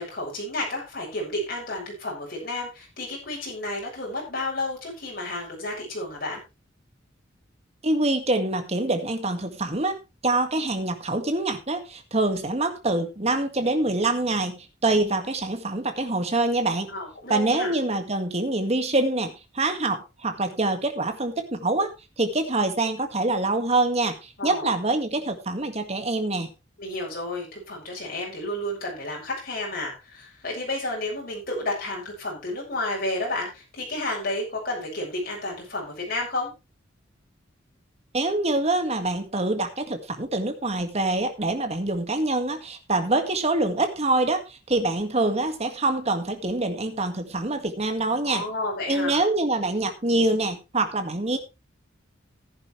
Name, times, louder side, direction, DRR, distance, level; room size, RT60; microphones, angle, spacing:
voice 1, 0.0-6.4 16.9-17.7 24.4-24.7 26.8-36.5 48.2-49.2, left 2 dB, 50° left, -2 dB, 6.8 m, -31 dB
voice 2, 7.8-10.0 10.2-16.9 17.3-21.9 22.2-26.5 38.1-48.4 48.9-51.4, right 2 dB, 35° right, 7 dB, 1.9 m, -25 dB
14.0 x 10.5 x 3.3 m, 0.26 s
head